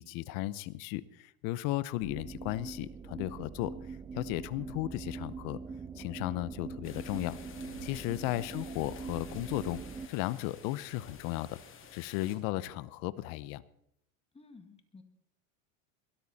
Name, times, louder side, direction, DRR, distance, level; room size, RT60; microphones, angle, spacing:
voice 1, 0.0-5.6 6.0-7.4 7.8-9.8 10.1-11.6 11.9-13.6, left 17 dB, 60° left, 17 dB, 0.9 m, -35 dB
sound 1, 2.0-10.1, right 5 dB, 10° right, 0.7 m, -43 dB
sound 2, 6.8-12.4, left 6 dB, 35° left, 2.5 m, -52 dB
sound 3, 6.8-8.5 9.2-12.3, right 3 dB, 70° right, 5.8 m, -61 dB
voice 2, 14.3-15.0, left 4 dB, 15° left, 8 dB, 1.9 m, -54 dB
22.5 x 13.5 x 4.2 m, 0.73 s
supercardioid pair, 130°, 37 cm